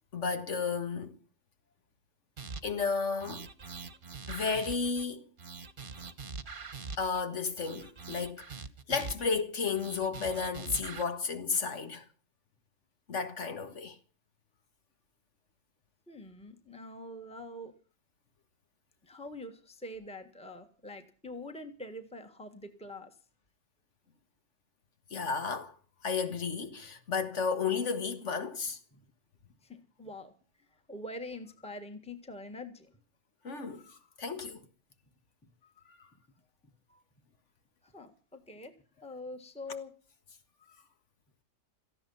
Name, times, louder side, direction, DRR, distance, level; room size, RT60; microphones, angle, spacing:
voice 1, 0.1-1.2 2.6-3.5 4.3-5.3 7.0-8.5 8.9-12.1 13.1-14.0 25.1-25.8 26.0-28.8 33.4-34.6 35.9-36.1, left 5 dB, 60° left, 2.0 m, -33 dB
sound 1, 2.4-2.9 3.2-5.1 5.4-7.2 7.6-9.4 9.7-11.0, right 4 dB, 40° right, 1.3 m, -43 dB
voice 2, 16.1-17.7 19.0-23.1 28.9-29.0 29.6-30.3 30.9-32.9 36.9-37.0 37.8-38.7 39.0-39.9, left 1 dB, 5° left, 1.6 m, -44 dB
18.0 x 14.5 x 5.6 m
omnidirectional pair, 1.4 m